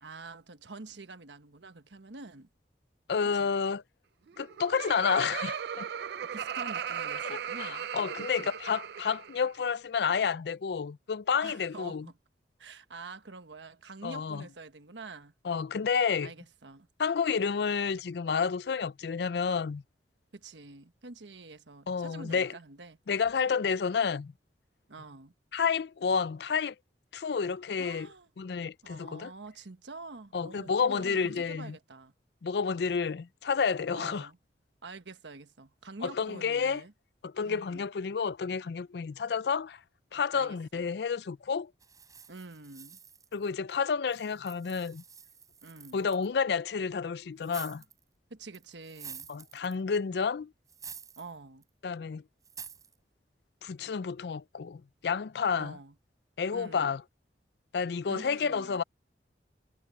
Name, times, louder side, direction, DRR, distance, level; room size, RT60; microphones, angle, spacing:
voice 1, 0.0-2.5 3.4-3.5 6.2-7.9 8.4-8.5 11.4-12.1 12.6-15.3 16.2-16.9 20.3-23.0 24.9-25.3 27.8-28.3 28.8-32.1 33.9-34.4 34.8-36.9 37.4-37.9 40.3-40.8 42.3-43.0 45.6-46.0 48.3-49.3 51.2-51.6 55.5-55.9 56.5-57.0 58.1-58.8, right 3 dB, 85° right, 1.3 m, -47 dB
voice 2, 3.1-3.8 4.4-5.9 7.2-12.1 14.0-14.5 15.4-16.3 17.0-19.8 21.9-22.5 23.1-24.3 25.5-26.7 27.1-28.1 28.4-29.3 30.3-31.8 32.4-34.3 36.0-36.8 37.2-39.8 40.1-41.7 43.3-45.0 45.9-47.8 49.3-50.5 51.8-52.2 53.6-55.8 56.4-57.0 57.7-58.8, left 6 dB, 65° left, 0.4 m, -30 dB
Laughter, 4.3-9.5, right 8 dB, 65° right, 0.4 m, -37 dB
sound 1, 41.8-43.7 44.1-46.3 47.4-48.0 48.5-50.0 50.7-51.3 51.6-51.7 52.4-52.9, right 7 dB, 20° right, 4.4 m, -48 dB
head